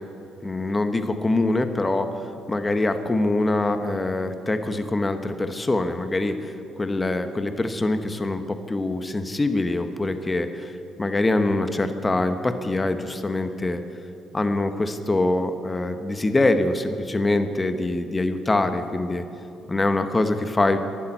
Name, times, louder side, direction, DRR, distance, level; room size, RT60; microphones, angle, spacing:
voice 1, 0.4-10.7 11.0-13.8 14.3-19.2 19.7-20.8, left 2 dB, 20° left, 8 dB, 1.0 m, -24 dB
12.5 x 11.5 x 9.0 m, 2.7 s
cardioid pair, 90°, 0 cm